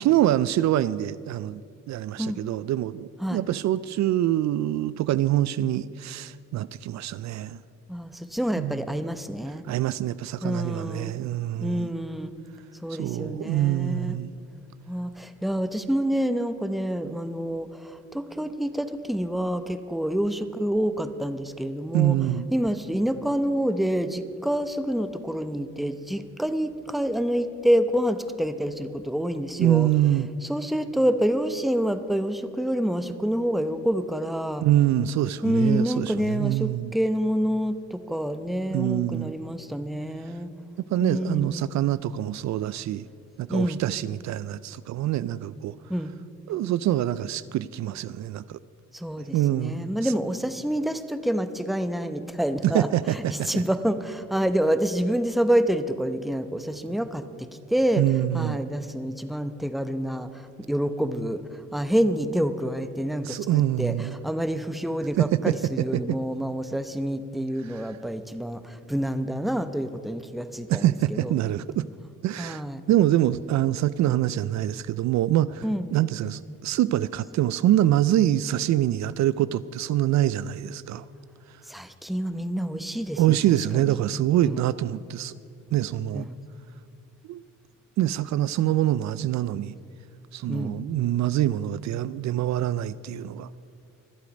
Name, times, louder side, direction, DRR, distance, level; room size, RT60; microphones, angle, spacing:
voice 1, 0.0-1.6 1.9-7.6 8.6-8.7 9.7-11.9 13.0-14.3 21.9-22.5 29.6-30.3 34.6-36.9 38.7-39.3 40.9-43.0 43.4-45.7 46.5-48.6 49.3-50.1 52.6-53.6 58.0-58.6 63.2-64.2 65.2-65.6 65.9-66.2 67.7-67.9 70.7-71.9 72.2-75.6 75.9-81.0 83.2-85.3 85.7-86.3 87.3-87.4 88.0-89.7 90.3-93.5, right 13 dB, 65° right, 0.4 m, -25 dB
voice 2, 7.9-9.6 10.4-11.1 11.6-12.3 12.8-14.2 14.9-22.2 22.5-29.9 30.4-34.6 35.4-40.5 41.0-41.6 43.5-43.8 45.9-46.1 48.9-58.0 58.3-71.3 72.4-72.8 75.6-75.9 81.7-84.0 84.4-84.6 86.1-86.4 90.5-90.8, equal, ahead, 0.8 m, -27 dB
25.0 x 8.3 x 5.2 m
cardioid pair, 90°, 30 cm